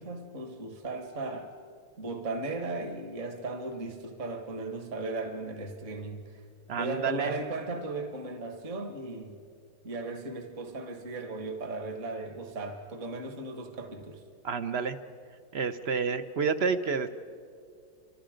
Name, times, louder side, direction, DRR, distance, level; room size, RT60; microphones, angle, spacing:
voice 1, 0.0-1.5 2.0-6.4 6.7-9.4 9.8-14.2, right 2 dB, 40° right, 1.9 m, -36 dB
voice 2, 6.7-7.4 14.4-15.0 15.5-17.1, right 5 dB, 80° right, 0.5 m, -29 dB
29.0 x 26.0 x 5.1 m
omnidirectional pair, 2.1 m